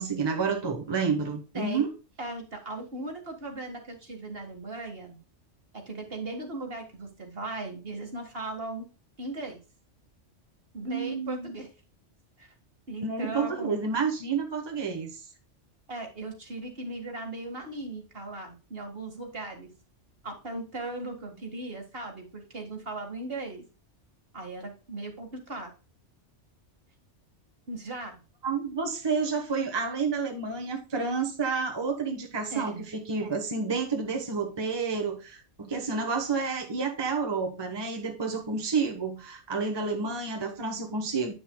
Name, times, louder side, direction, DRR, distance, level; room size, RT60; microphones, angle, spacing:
voice 1, 0.0-1.9 10.8-11.5 13.0-15.2 28.4-41.3, right 5 dB, 20° right, 3 dB, 1.1 m, -30 dB
voice 2, 2.2-5.2 5.7-8.9 9.2-9.6 10.7-11.7 12.4-12.5 12.9-13.8 15.9-19.7 20.2-23.6 24.3-25.7 27.7-28.2 32.5-32.8, right 2 dB, 50° right, 3 dB, 2.0 m, -38 dB
9.3 x 6.2 x 2.2 m, 0.33 s
omnidirectional pair, 1.2 m